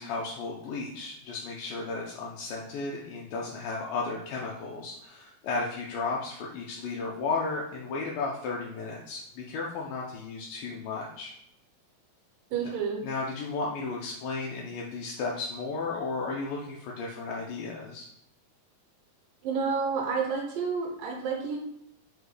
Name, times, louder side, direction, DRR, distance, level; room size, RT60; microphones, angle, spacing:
voice 1, 0.0-11.3 13.0-18.1, left 3 dB, 80° left, -3 dB, 2.1 m, -34 dB
voice 2, 12.5-13.0 19.4-21.6, right 5 dB, 80° right, 1 dB, 2.1 m, -29 dB
6.1 x 2.1 x 3.3 m, 0.76 s
omnidirectional pair, 4.1 m